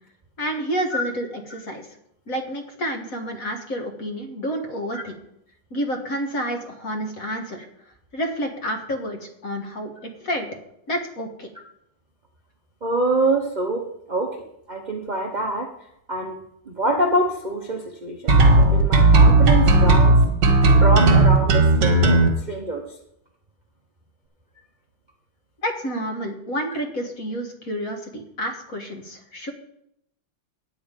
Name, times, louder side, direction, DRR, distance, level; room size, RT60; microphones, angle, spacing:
voice 1, 0.4-1.9 2.3-5.2 5.7-7.7 8.1-10.5 10.9-11.5 25.6-29.5, equal, 45° left, 4 dB, 1.7 m, -29 dB
voice 2, 12.8-14.4 14.7-16.4 16.7-23.0, right 1 dB, 75° right, 2 dB, 0.4 m, -26 dB
sound 1, 18.3-22.3, right 2 dB, 60° right, 2.0 m, -14 dB
9.4 x 8.9 x 5.2 m, 0.78 s
omnidirectional pair, 2.4 m